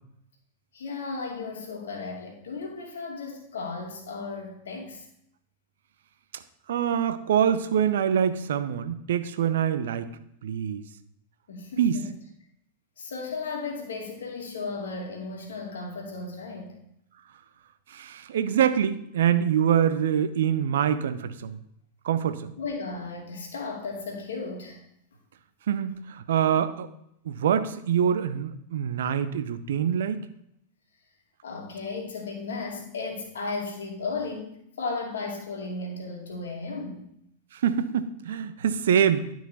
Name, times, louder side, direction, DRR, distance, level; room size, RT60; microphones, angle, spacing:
voice 1, 0.7-5.0 11.5-12.1 13.0-16.8 22.6-24.8 31.4-37.1, left 4 dB, 65° left, 1 dB, 2.6 m, -35 dB
voice 2, 6.7-10.1 10.4-10.8 11.8-12.0 17.9-21.6 22.0-22.5 25.7-26.9 27.2-30.2 37.5-39.3, right 8 dB, 60° right, 11 dB, 0.8 m, -25 dB
11.5 x 6.1 x 4.1 m, 0.74 s
figure-of-eight pair, 90°, 0 cm